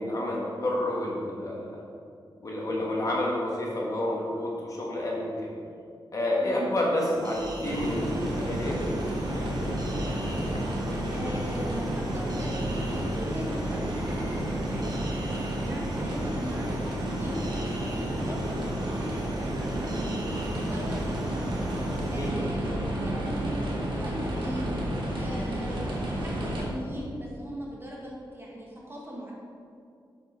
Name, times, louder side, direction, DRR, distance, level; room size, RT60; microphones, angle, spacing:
voice 1, 0.0-1.8 2.4-5.5 6.1-9.0 22.2-22.3, left 1 dB, 40° left, -3 dB, 1.5 m, -29 dB
sound 1, 7.0-22.3, right 2 dB, 50° right, 0.8 m, -47 dB
sound 2, 7.6-26.6, right 1 dB, 75° right, 1.4 m, -31 dB
sound 3, 9.0-16.7 17.0-17.1 17.3-17.6 18.1-18.6, left 2 dB, 60° left, 0.7 m, -45 dB
voice 2, 11.1-29.3, equal, 25° right, -3 dB, 1.5 m, -40 dB
7.5 x 4.7 x 5.1 m, 2.4 s
wide cardioid pair, 135°, 8 cm